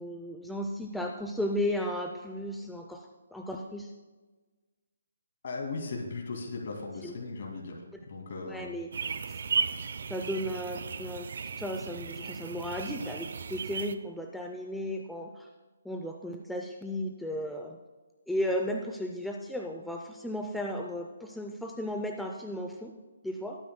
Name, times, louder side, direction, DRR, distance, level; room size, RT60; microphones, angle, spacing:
voice 1, 0.0-3.9 7.0-7.1 8.5-9.4 10.1-11.3 11.6-15.5 15.8-17.8 18.3-22.9 23.2-23.6, equal, ahead, 1 dB, 0.5 m, -35 dB
voice 2, 5.4-7.8 8.1-8.8, left 3 dB, 50° left, 0 dB, 2.2 m, -37 dB
sound 1, 8.9-13.9, right 5 dB, 55° right, 0.6 m, -35 dB
20.0 x 9.3 x 2.2 m, 1.3 s
hypercardioid pair, 165°, 0 cm